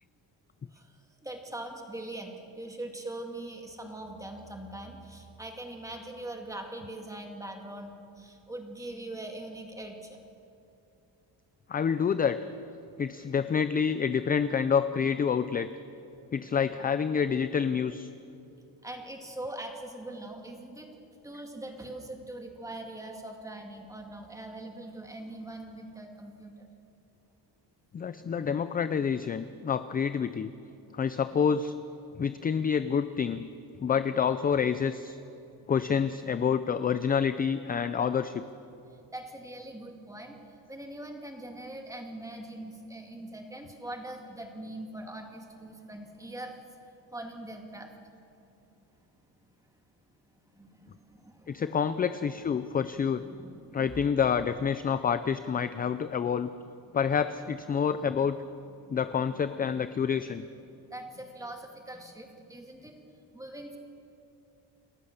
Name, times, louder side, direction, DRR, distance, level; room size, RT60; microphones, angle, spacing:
voice 1, 0.7-10.2 18.8-20.9 21.2-26.7 39.1-40.4 40.7-46.6 47.1-47.9 50.5-51.9 52.6-54.1 56.9-57.0 58.8-59.0 60.9-62.9 63.3-63.8, right 1 dB, 10° right, 3 dB, 2.2 m, -42 dB
voice 2, 11.7-12.4 13.0-15.7 16.3-18.1 27.9-30.5 30.9-31.7 32.2-33.5 33.8-35.2 35.7-38.4 51.5-53.2 53.7-56.5 56.9-58.4 58.9-60.4, left 7 dB, 20° left, 12 dB, 0.4 m, -28 dB
29.0 x 14.0 x 6.7 m, 2.7 s
cardioid pair, 155°, 42 cm